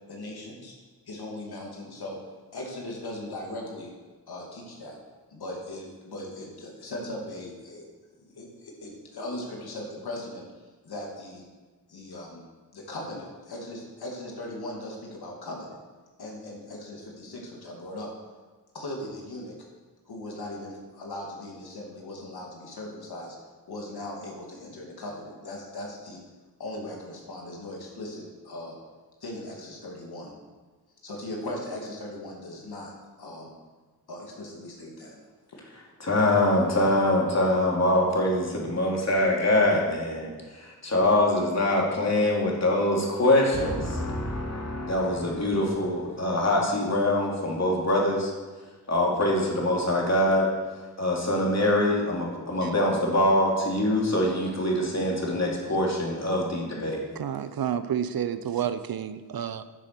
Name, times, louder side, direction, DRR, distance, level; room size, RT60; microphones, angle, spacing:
voice 1, 0.1-0.7 1.1-2.2 2.5-3.9 4.3-5.0 5.3-7.8 8.4-10.4 10.8-11.4 11.9-12.4 12.7-15.8 16.2-18.1 18.7-19.5 20.1-23.4 23.7-26.2 26.6-28.8 29.2-30.3 31.0-33.5 34.1-35.2, left 1 dB, 75° left, -1 dB, 2.7 m, -38 dB
voice 2, 36.0-48.3 48.9-50.5 51.0-57.0, left 1 dB, 40° left, -2 dB, 3.5 m, -24 dB
voice 3, 57.2-59.6, right 9 dB, 65° right, 13 dB, 0.7 m, -30 dB
10.0 x 7.5 x 6.9 m, 1.3 s
cardioid pair, 55°, 38 cm